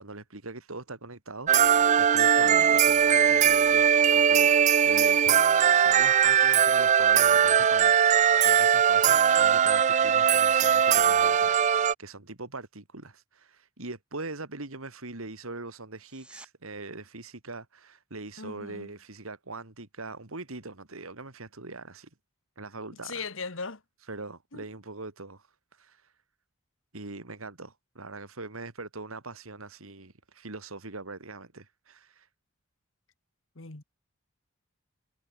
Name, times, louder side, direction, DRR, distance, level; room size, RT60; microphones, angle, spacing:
voice 1, 0.0-4.5 4.8-5.4 5.8-22.1 22.6-23.2 24.0-26.1 26.9-32.3, right 3 dB, 75° right, 2.6 m, -42 dB
sound 1, 1.5-11.9, right 8 dB, 35° right, 0.3 m, -20 dB
voice 2, 2.4-2.8 18.4-18.9 23.0-23.8 24.5-24.7 33.6-33.8, left 4 dB, 65° left, 1.8 m, -39 dB
sound 2, 15.9-16.5 27.9-28.0, right 1 dB, 5° right, 2.4 m, -52 dB
head